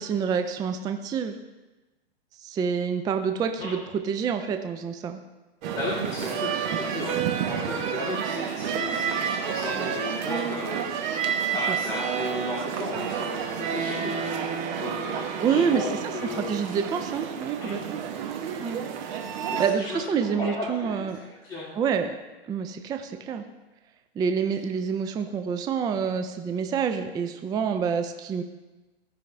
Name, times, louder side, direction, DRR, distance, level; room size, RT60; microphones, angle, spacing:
voice 1, 0.0-1.4 2.4-3.8 4.0-5.2 9.7-9.9 11.7-11.8 15.4-15.8 16.3-18.0 18.6-18.8 19.6-21.2 21.8-22.2 22.5-23.4 24.2-28.4, right 6 dB, 15° right, 7 dB, 0.4 m, -27 dB
sound 1, 5.6-19.7, right 7 dB, 50° right, 1.2 m, -30 dB
voice 2, 5.7-11.2 11.4-14.2 14.7-16.6 17.6-17.8 19.5-21.1 21.4-21.7, left 2 dB, 10° left, -10 dB, 3.0 m, -34 dB
16.0 x 5.5 x 3.3 m, 1.1 s
hypercardioid pair, 110°, 31 cm